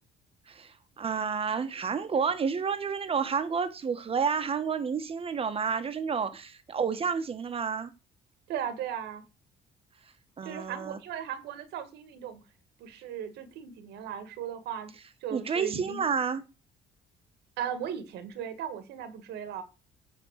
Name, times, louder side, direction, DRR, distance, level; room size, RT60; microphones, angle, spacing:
voice 1, 0.5-7.9 10.0-11.0 15.3-16.4, right 6 dB, 35° right, 1.5 m, -30 dB
voice 2, 8.5-9.2 10.4-12.4 12.8-14.9 15.2-16.0 17.6-19.6, right 9 dB, 80° right, 2.0 m, -37 dB
10.0 x 4.2 x 6.5 m
cardioid pair, 110°, 17 cm